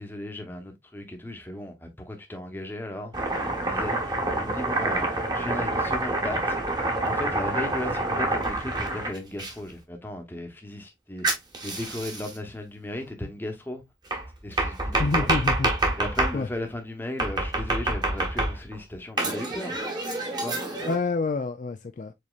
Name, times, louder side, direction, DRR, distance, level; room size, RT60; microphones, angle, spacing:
voice 1, 0.0-3.1 3.6-6.6 7.0-13.8 14.4-15.3 16.0-19.8 20.4-20.6, left 1 dB, 10° left, 0.9 m, -36 dB
Domestic sounds home sounds, 3.1-9.5 11.2-12.4 14.1-16.4 17.2-18.8 19.2-21.0, right 2 dB, 25° right, 1.2 m, -27 dB
voice 2, 15.0-15.7 16.3-16.5 20.8-22.1, left 4 dB, 45° left, 0.3 m, -27 dB
5.0 x 4.2 x 2.4 m
head